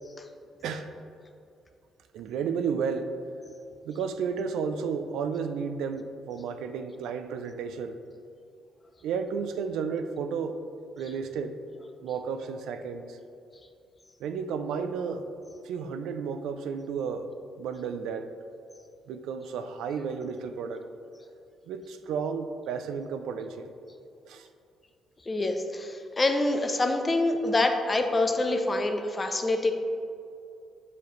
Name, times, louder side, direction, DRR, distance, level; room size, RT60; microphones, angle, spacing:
voice 1, 0.6-0.9 2.1-3.2 3.8-8.0 9.0-10.6 11.0-11.6 12.0-13.2 14.2-15.2 15.6-17.3 17.6-18.3 19.1-20.9 21.7-23.7 24.2-24.5, right 6 dB, 85° right, 8 dB, 0.4 m, -32 dB
voice 2, 25.3-29.7, left 2 dB, 25° left, 5 dB, 0.6 m, -26 dB
6.8 x 4.8 x 3.1 m, 2.5 s
cardioid pair, 90°, 0 cm